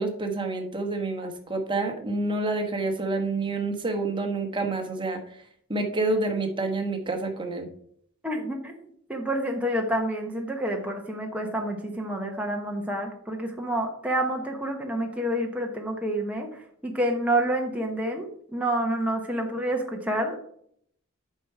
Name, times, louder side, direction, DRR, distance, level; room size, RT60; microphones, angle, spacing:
voice 1, 0.0-5.2 5.7-7.7, right 2 dB, 20° right, 3 dB, 1.3 m, -28 dB
voice 2, 8.2-8.7 9.1-20.4, right 1 dB, 5° right, 1 dB, 1.1 m, -28 dB
8.3 x 5.8 x 4.6 m, 0.66 s
head